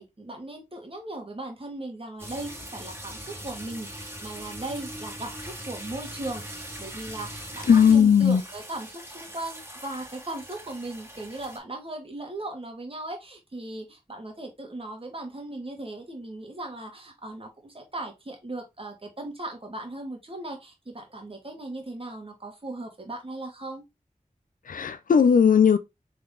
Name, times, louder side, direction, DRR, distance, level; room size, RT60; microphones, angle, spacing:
voice 1, 0.0-23.8, right 2 dB, 40° right, 1.7 m, -38 dB
sound 1, 2.2-11.6, right 1 dB, 15° right, 1.8 m, -41 dB
voice 2, 7.7-8.4 24.7-25.8, left 7 dB, 80° left, 0.4 m, -17 dB
3.9 x 3.3 x 3.8 m
wide cardioid pair, 50°, 14 cm